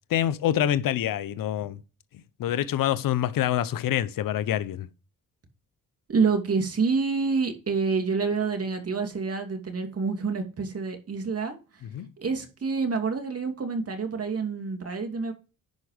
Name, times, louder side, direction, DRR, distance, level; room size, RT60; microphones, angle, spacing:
voice 1, 0.1-1.8 2.4-4.9 11.9-12.1, left 11 dB, 70° left, 0.8 m, -26 dB
voice 2, 6.1-11.6 12.2-15.3, right 4 dB, 45° right, 2.6 m, -27 dB
10.5 x 4.8 x 4.9 m
cardioid pair, 70°, 34 cm